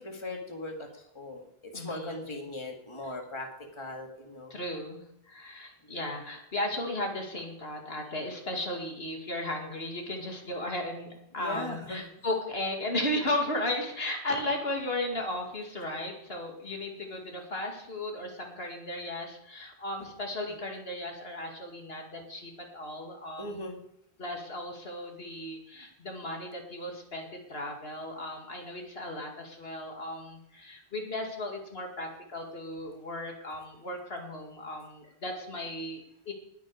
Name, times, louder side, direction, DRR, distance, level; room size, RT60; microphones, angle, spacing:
voice 1, 0.0-1.4 1.7-3.5 3.8-4.5 5.9-6.1 11.4-12.1 23.4-23.8, left 2 dB, 25° left, 2 dB, 2.1 m, -39 dB
voice 2, 1.7-2.3 3.0-3.2 4.5-23.6 24.2-36.3, left 1 dB, 70° left, 1 dB, 2.6 m, -35 dB
20.0 x 8.4 x 5.0 m, 0.76 s
omnidirectional pair, 1.1 m